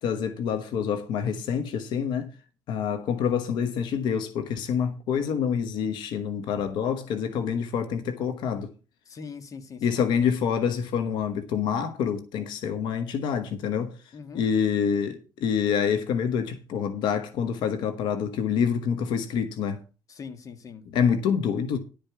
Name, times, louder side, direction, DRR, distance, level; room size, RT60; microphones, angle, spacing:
voice 1, 0.0-2.3 2.7-8.7 9.8-13.9 14.3-19.8 20.9-21.8, left 7 dB, 90° left, 1.2 m, -27 dB
voice 2, 9.1-10.0 14.1-14.4 20.1-20.8, left 5 dB, 50° left, 1.7 m, -41 dB
11.5 x 5.2 x 6.7 m
cardioid pair, 110°, 8 cm